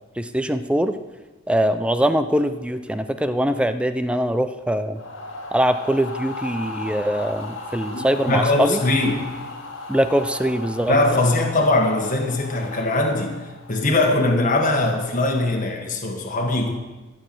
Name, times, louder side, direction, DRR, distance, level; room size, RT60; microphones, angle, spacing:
voice 1, 0.2-0.9 1.5-5.0 5.5-8.8 9.9-11.2, equal, 5° right, 10 dB, 0.4 m, -22 dB
sound 1, 4.9-14.0, left 3 dB, 85° left, 1.8 m, -36 dB
voice 2, 7.9-9.2 10.9-13.4 13.7-16.7, left 2 dB, 40° left, 1 dB, 1.5 m, -21 dB
13.0 x 6.9 x 7.5 m, 1.2 s
head